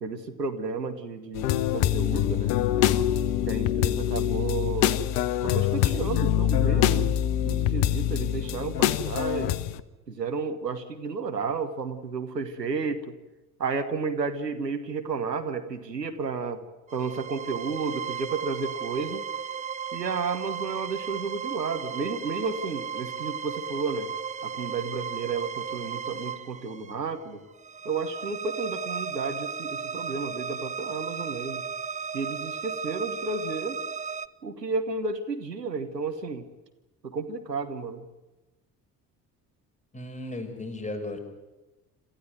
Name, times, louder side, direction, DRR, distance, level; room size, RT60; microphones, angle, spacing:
voice 1, 0.0-2.5 3.5-5.0 5.4-7.1 7.4-9.6 10.1-13.1 13.6-16.6 16.9-19.2 19.9-24.1 24.4-27.4 27.8-31.6 32.1-33.8 34.4-36.4 37.0-38.0, right 4 dB, 85° right, 7 dB, 1.3 m, -32 dB
sound 1, 1.3-9.8, left 11 dB, 60° left, 1.1 m, -24 dB
sound 2, 16.9-34.3, right 6 dB, 15° right, 0.8 m, -35 dB
voice 2, 39.9-41.2, left 2 dB, 15° left, 5 dB, 5.4 m, -35 dB
27.0 x 15.0 x 9.3 m, 1.1 s
figure-of-eight pair, 55°, 48 cm